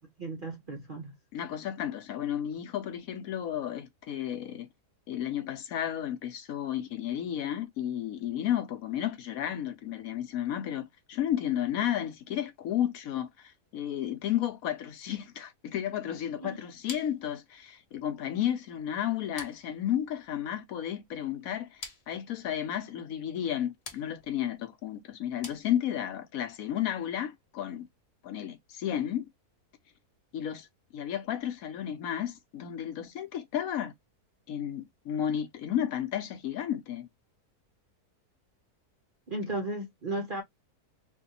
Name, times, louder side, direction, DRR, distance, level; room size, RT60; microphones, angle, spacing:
voice 1, 0.2-1.2 16.4-16.6 39.3-40.4, right 2 dB, 55° right, 0.5 m, -35 dB
voice 2, 1.3-4.7 5.1-27.9 28.2-29.3 30.3-30.7 30.9-33.9 34.5-37.1, left 10 dB, 70° left, 1.0 m, -32 dB
sound 1, 16.9-26.2, left 4 dB, 45° left, 1.1 m, -50 dB
3.5 x 2.6 x 2.7 m
omnidirectional pair, 1.6 m